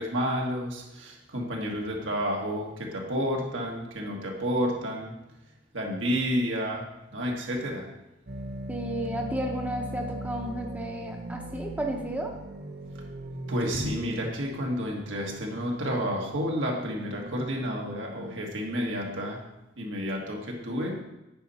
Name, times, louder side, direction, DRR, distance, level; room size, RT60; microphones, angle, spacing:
voice 1, 0.0-5.2 5.7-6.8 7.1-7.8 13.5-19.4 19.8-21.0, equal, 85° right, -1 dB, 1.6 m, -30 dB
sound 1, 8.3-18.5, right 1 dB, 55° right, 0.7 m, -40 dB
voice 2, 8.7-12.3, right 1 dB, 10° right, 1 dB, 0.6 m, -32 dB
8.8 x 5.6 x 4.1 m, 0.94 s
head